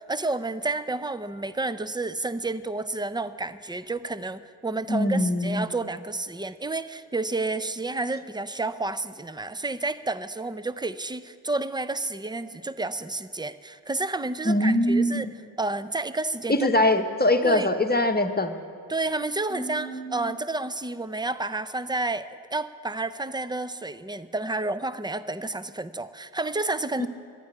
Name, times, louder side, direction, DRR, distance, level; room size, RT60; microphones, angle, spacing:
voice 1, 0.0-15.3 15.6-16.7 17.4-17.7 18.9-27.1, right 2 dB, 10° right, 14 dB, 0.5 m, -30 dB
voice 2, 4.9-5.7 14.4-15.4 16.5-18.5 19.5-20.3 27.0-27.1, left 1 dB, 20° left, 6 dB, 1.1 m, -23 dB
12.5 x 9.4 x 10.0 m, 2.4 s
cardioid pair, 65°, 43 cm